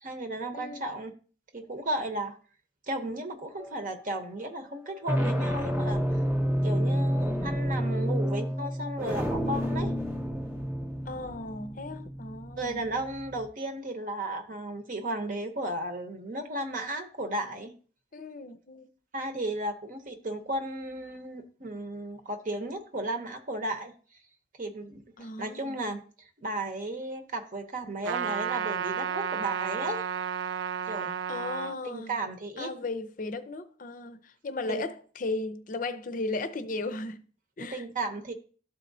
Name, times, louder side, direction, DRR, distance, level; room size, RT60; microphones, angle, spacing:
voice 1, 0.0-1.1 1.5-2.3 2.9-6.2 6.6-9.9 12.6-17.7 19.1-23.9 24.6-25.0 25.4-30.1 30.9-31.1 31.8-32.7 34.7-34.9 37.6-38.3, right 1 dB, 50° right, 0.9 m, -34 dB
voice 2, 0.5-0.9 6.7-7.0 11.1-12.9 18.1-18.9 25.2-25.7 31.3-32.1 32.6-37.2 37.6-37.8, left 3 dB, 50° left, 0.6 m, -36 dB
sound 1, 3.6-4.0 4.8-13.4, equal, 10° right, 1.0 m, -30 dB
Trumpet, 28.0-31.8, right 8 dB, 80° right, 0.3 m, -32 dB
12.5 x 4.2 x 2.7 m
head